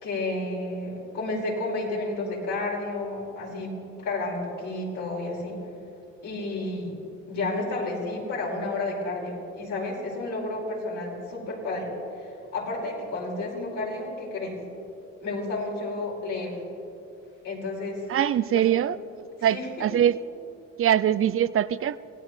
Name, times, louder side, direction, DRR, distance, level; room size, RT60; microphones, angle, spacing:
voice 1, 0.0-3.7 4.0-5.6 6.2-6.9 7.3-11.9 12.1-14.6 15.2-16.6 17.4-18.2 18.5-18.6 19.4-19.7, left 2 dB, 80° left, -4 dB, 5.1 m, -31 dB
voice 2, 18.1-19.0 19.4-20.2 20.8-22.0, right 10 dB, 45° right, 16 dB, 0.4 m, -23 dB
26.0 x 17.0 x 3.2 m, 2.7 s
cardioid pair, 90°, 30 cm